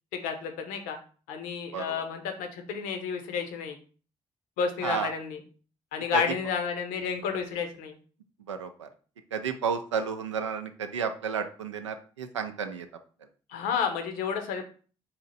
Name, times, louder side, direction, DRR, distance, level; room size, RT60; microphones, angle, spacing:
voice 1, 0.1-1.0 1.3-3.8 4.6-5.4 5.9-8.0 13.5-14.6, left 6 dB, 65° left, 5 dB, 0.8 m, -31 dB
voice 2, 1.7-2.0 4.8-5.1 6.1-6.2 8.5-8.9 9.3-12.9, right 6 dB, 85° right, 7 dB, 0.4 m, -32 dB
4.2 x 2.8 x 4.0 m, 0.40 s
figure-of-eight pair, 40°, 15 cm